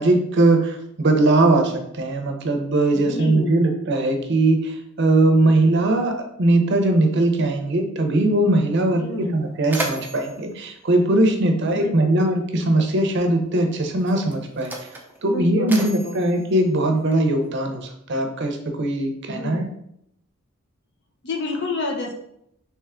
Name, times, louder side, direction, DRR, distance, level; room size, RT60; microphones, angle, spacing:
voice 1, 0.0-14.7 15.2-19.7, right 2 dB, 55° right, 5 dB, 0.6 m, -20 dB
voice 2, 2.9-3.6 9.0-9.4 11.7-12.3 15.3-16.3 19.3-19.6 21.2-22.1, left 3 dB, 55° left, 2 dB, 0.7 m, -29 dB
Mechanisms, 8.7-8.8 9.2-11.9 12.9-13.1 13.9-17.5, right 1 dB, 10° right, 0.4 m, -35 dB
3.3 x 3.0 x 3.6 m, 0.74 s
head